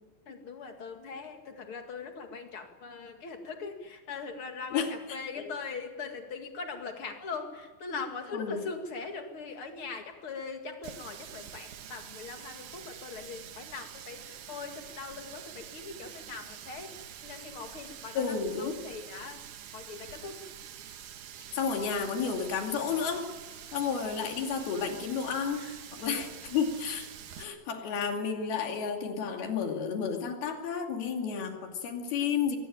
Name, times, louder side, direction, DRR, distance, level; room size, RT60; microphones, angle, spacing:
voice 1, 0.3-17.0 17.2-19.4 19.7-20.5 25.6-25.8 26.1-26.3 27.8-27.9, left 4 dB, 40° left, 5 dB, 2.4 m, -41 dB
Water tap faucet, 10.8-27.4, right 9 dB, 65° right, 2.5 m, -46 dB
voice 2, 18.1-18.8 21.5-23.3 23.7-25.7 25.9-27.1 27.4-32.6, left 6 dB, 85° left, 3 dB, 4.5 m, -31 dB
23.0 x 19.5 x 8.9 m, 1.3 s
omnidirectional pair, 4.3 m